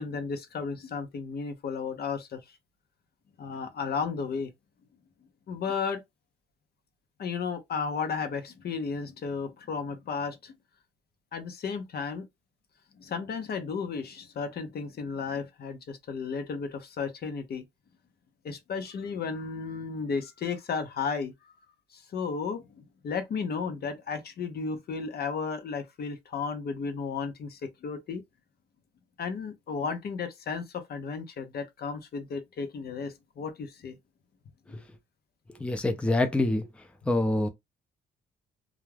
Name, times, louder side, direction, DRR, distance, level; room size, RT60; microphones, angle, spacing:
voice 1, 0.0-2.4 3.4-4.5 5.5-6.0 7.2-10.5 11.3-12.3 13.0-17.6 18.4-21.3 21.9-28.2 29.2-34.0, left 5 dB, 55° left, 0.6 m, -34 dB
voice 2, 35.6-36.6 37.1-37.5, left 2 dB, 5° left, 0.5 m, -25 dB
2.4 x 2.2 x 3.2 m
cardioid pair, 90°, 20 cm